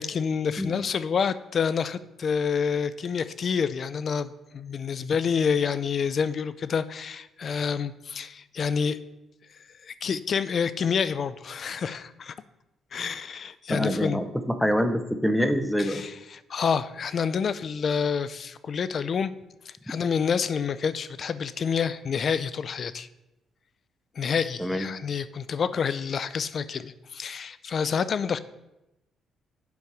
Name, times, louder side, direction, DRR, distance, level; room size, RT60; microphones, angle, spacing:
voice 1, 0.0-9.0 9.8-12.3 12.9-14.2 15.8-19.3 19.9-23.1 24.2-28.4, left 6 dB, 50° left, 15 dB, 0.4 m, -28 dB
voice 2, 13.7-16.0 24.6-24.9, equal, ahead, 9 dB, 0.7 m, -25 dB
8.3 x 5.1 x 4.6 m, 0.94 s
cardioid pair, 90°, 0 cm